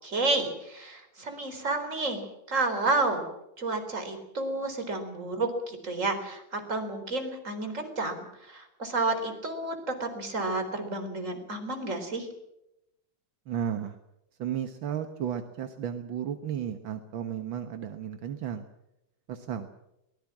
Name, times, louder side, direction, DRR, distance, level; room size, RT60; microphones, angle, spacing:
voice 1, 0.0-3.3 3.6-12.3, right 2 dB, 40° right, 6 dB, 4.5 m, -31 dB
voice 2, 13.5-14.0 14.4-18.6 19.3-19.7, right 9 dB, 80° right, 7 dB, 2.0 m, -33 dB
23.0 x 19.5 x 7.4 m, 0.84 s
omnidirectional pair, 2.1 m